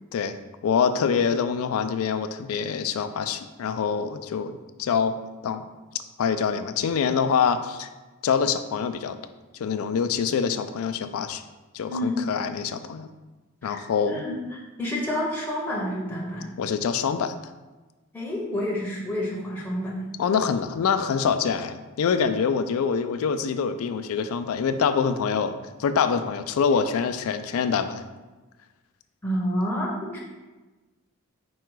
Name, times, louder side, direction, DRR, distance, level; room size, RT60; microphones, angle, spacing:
voice 1, 0.6-5.2 5.4-5.6 6.2-7.9 8.2-9.2 9.5-11.4 11.7-13.1 13.6-14.3 16.6-17.4 20.2-28.0, left 6 dB, 80° left, 10 dB, 0.3 m, -25 dB
voice 2, 11.9-12.3 13.6-13.8 14.0-14.4 14.8-16.6 18.1-20.0 29.2-30.2, left 1 dB, 10° left, -4 dB, 0.7 m, -29 dB
4.7 x 2.3 x 4.5 m, 1.2 s
head